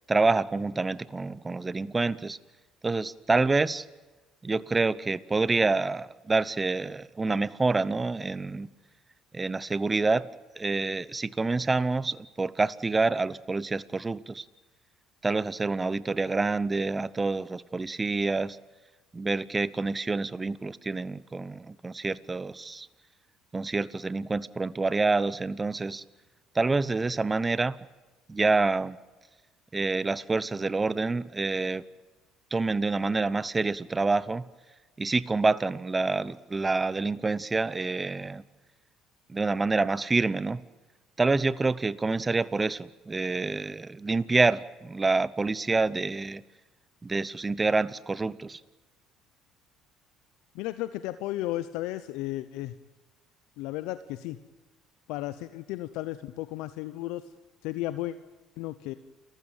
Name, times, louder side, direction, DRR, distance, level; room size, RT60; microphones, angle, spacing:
voice 1, 0.1-2.4 2.8-3.8 4.4-8.7 9.3-10.3 10.6-14.4 15.2-18.6 19.1-22.9 23.5-26.0 26.5-27.8 28.3-29.0 29.7-31.8 32.5-34.4 35.0-38.4 39.3-40.6 41.2-46.4 47.0-48.6, right 3 dB, 20° right, 19 dB, 0.8 m, -27 dB
voice 2, 50.5-52.7 53.6-54.4 55.1-57.3 57.6-58.2 58.6-58.9, left 15 dB, 80° left, 13 dB, 0.8 m, -34 dB
29.5 x 15.0 x 9.0 m, 1.2 s
supercardioid pair, 75°, 0 cm